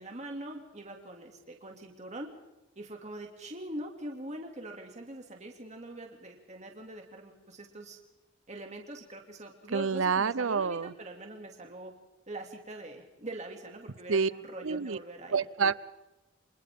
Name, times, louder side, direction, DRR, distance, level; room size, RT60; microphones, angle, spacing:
voice 1, 0.0-2.3 2.8-8.0 8.5-11.9 12.3-15.4, right 1 dB, 35° right, 2 dB, 2.6 m, -43 dB
voice 2, 9.7-10.9 14.1-14.3 14.6-15.0 15.3-15.7, right 5 dB, 80° right, 18 dB, 0.7 m, -27 dB
29.5 x 25.5 x 3.7 m, 1.0 s
head